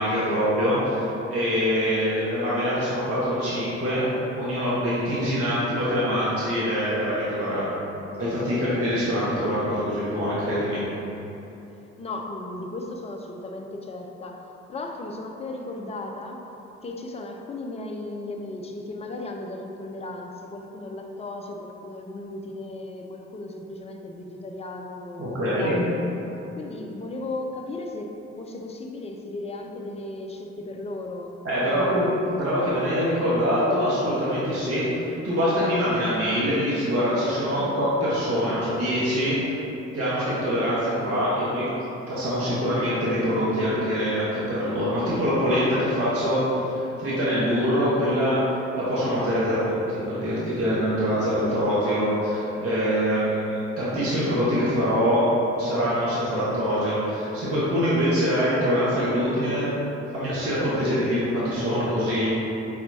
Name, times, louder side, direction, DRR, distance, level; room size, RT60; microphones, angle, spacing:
voice 1, 0.0-4.0 4.4-7.7 8.2-10.8 25.2-25.8 31.4-39.5 39.9-41.7 42.1-46.4 46.8-48.4 48.8-55.3 55.6-59.7 60.1-62.3, equal, 40° right, -9 dB, 1.3 m, -24 dB
voice 2, 12.0-16.5 16.8-26.0 26.6-32.3 37.6-37.8 51.6-52.1, left 2 dB, 20° left, 2 dB, 0.5 m, -36 dB
4.3 x 4.2 x 2.7 m, 3.0 s
hypercardioid pair, 45°, 35 cm